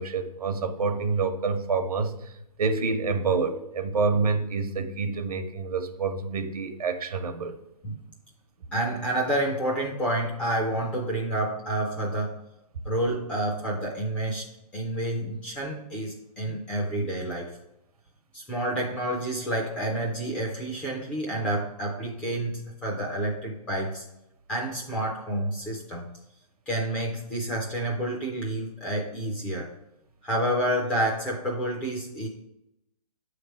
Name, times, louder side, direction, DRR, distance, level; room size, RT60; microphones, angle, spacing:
voice 1, 0.0-2.3 2.6-7.6, right 4 dB, 75° right, 7 dB, 0.8 m, -27 dB
voice 2, 8.7-12.4 12.9-14.4 14.7-17.5 18.3-24.0 24.5-26.1 26.7-29.7 30.2-32.3, right 1 dB, 5° left, -2 dB, 0.3 m, -29 dB
7.1 x 3.3 x 4.4 m, 0.86 s
hypercardioid pair, 150°, 19 cm